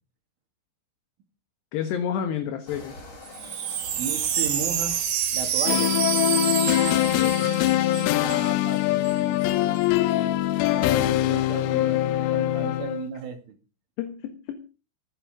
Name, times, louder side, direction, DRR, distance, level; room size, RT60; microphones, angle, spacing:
voice 1, 1.7-2.9 7.2-7.5 14.0-14.6, left 8 dB, 65° left, 6 dB, 3.3 m, -30 dB
sound 1, 2.7-10.9, left 2 dB, 30° left, 6.8 m, -46 dB
Wind chime, 3.3-8.5 8.7-8.8 9.0-9.5, right 8 dB, 60° right, 3.7 m, -28 dB
voice 2, 4.0-5.0 5.3-6.0 7.9-9.8 10.7-13.6, right 6 dB, 75° right, 5 dB, 4.9 m, -36 dB
sound 2, 5.7-13.1, left 14 dB, 80° left, 3.3 m, -23 dB
19.5 x 10.0 x 5.1 m, 0.35 s
omnidirectional pair, 5.7 m